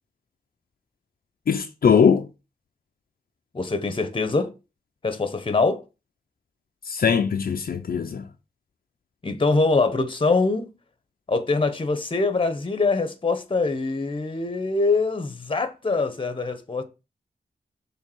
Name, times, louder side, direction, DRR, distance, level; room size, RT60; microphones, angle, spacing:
voice 1, 1.5-2.3 6.8-8.2, left 6 dB, 65° left, 0.6 m, -20 dB
voice 2, 3.5-4.5 5.0-5.8 9.2-10.7 11.3-16.8, left 3 dB, 30° left, 1.2 m, -23 dB
6.6 x 3.5 x 6.2 m
wide cardioid pair, 100°, 16 cm